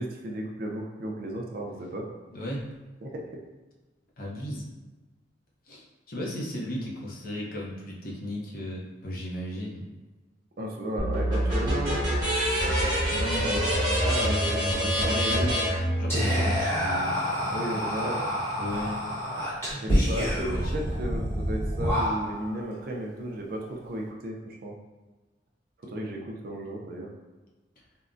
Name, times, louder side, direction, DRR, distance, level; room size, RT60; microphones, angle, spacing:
voice 1, 0.0-2.1 3.0-3.3 10.6-12.0 13.4-15.8 17.5-18.2 19.7-24.7 25.8-27.1, right 1 dB, 55° right, 0 dB, 0.4 m, -34 dB
voice 2, 2.3-2.7 4.2-4.6 5.7-9.8 13.1-13.6 14.2-15.5 16.0-17.2 18.6-19.0 19.9-20.1 20.5-20.7, left 1 dB, 55° left, -3 dB, 0.6 m, -35 dB
sound 1, 11.0-16.6, equal, 20° right, 1.3 m, -26 dB
Whispering, 16.1-22.6, equal, 15° left, 0.8 m, -28 dB
3.5 x 2.1 x 2.5 m, 1.2 s
head